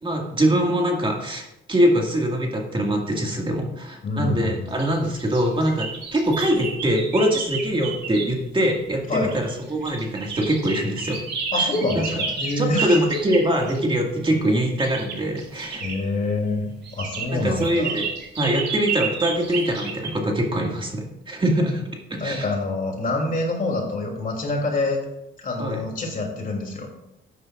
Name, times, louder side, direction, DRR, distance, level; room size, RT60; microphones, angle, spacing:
voice 1, 0.0-1.4 1.7-11.2 11.6-11.7 12.0-12.1 12.6-15.8 17.3-18.1 18.4-22.5 25.6-25.8, equal, 25° right, 0 dB, 2.1 m, -23 dB
voice 2, 4.0-4.7 9.1-9.3 11.5-13.0 15.8-17.9 22.2-25.0 25.4-26.9, left 2 dB, 45° left, 1 dB, 3.1 m, -26 dB
sound 1, 4.8-8.4 9.1-13.8 14.8-16.0 16.8-20.1, right 4 dB, 60° right, 3.0 m, -31 dB
13.0 x 9.4 x 2.5 m, 0.85 s
cardioid pair, 90°, 20 cm